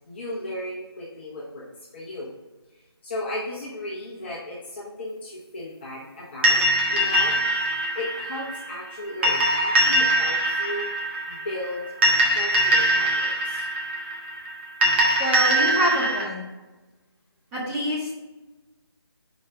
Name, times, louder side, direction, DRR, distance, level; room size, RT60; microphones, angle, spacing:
voice 1, 0.1-1.7 1.9-2.3 2.7-7.4 7.9-10.9 11.3-11.8 12.3-13.6, left 1 dB, 25° left, -5 dB, 1.0 m, -35 dB
sound 1, 6.4-16.2, right 1 dB, 25° right, 1.0 m, -23 dB
voice 2, 15.2-16.4 17.5-18.1, equal, 10° right, -8 dB, 1.5 m, -26 dB
5.1 x 3.9 x 4.8 m, 1.1 s
figure-of-eight pair, 160°, 14 cm